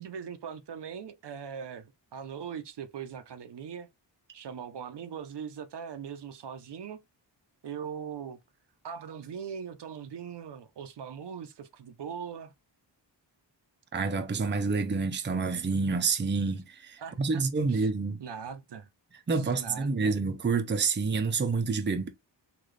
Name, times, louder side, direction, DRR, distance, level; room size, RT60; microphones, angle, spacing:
voice 1, 0.0-3.9 4.3-7.0 7.6-8.4 8.8-12.5 17.0-17.4 17.7-17.9 18.2-18.9 19.3-20.2, right 7 dB, 65° right, 0.6 m, -40 dB
voice 2, 13.9-18.2 19.3-22.1, right 4 dB, 25° right, 0.5 m, -28 dB
3.9 x 2.3 x 3.2 m
wide cardioid pair, 85°, 44 cm